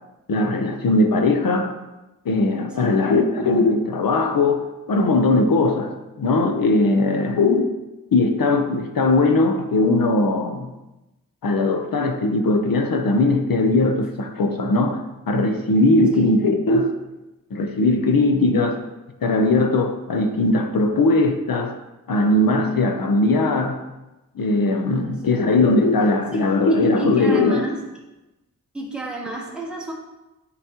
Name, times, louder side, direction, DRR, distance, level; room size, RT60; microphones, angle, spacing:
voice 1, 0.3-1.7 2.2-7.7 8.1-10.7 11.4-16.9 17.5-18.8 19.2-21.7 22.1-23.8 24.3-27.7, left 2 dB, 85° left, 6 dB, 0.8 m, -19 dB
voice 2, 2.8-3.3 7.0-7.1 16.1-16.3 25.0-25.5 26.3-27.8 28.7-29.9, right 2 dB, 5° right, -5 dB, 1.6 m, -33 dB
9.1 x 4.0 x 2.9 m, 1.0 s
wide cardioid pair, 85°, 34 cm